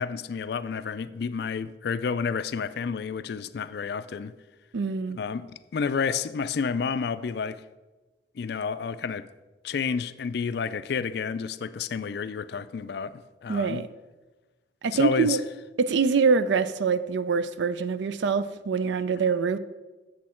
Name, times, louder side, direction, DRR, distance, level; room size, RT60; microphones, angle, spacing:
voice 1, 0.0-4.3 5.2-7.6 8.4-9.3 9.6-13.8 14.9-15.4, left 5 dB, 55° left, 0.3 m, -30 dB
voice 2, 4.7-5.2 13.5-13.9 14.8-15.4 15.8-19.6, right 5 dB, 65° right, 0.4 m, -24 dB
8.4 x 7.4 x 4.3 m
head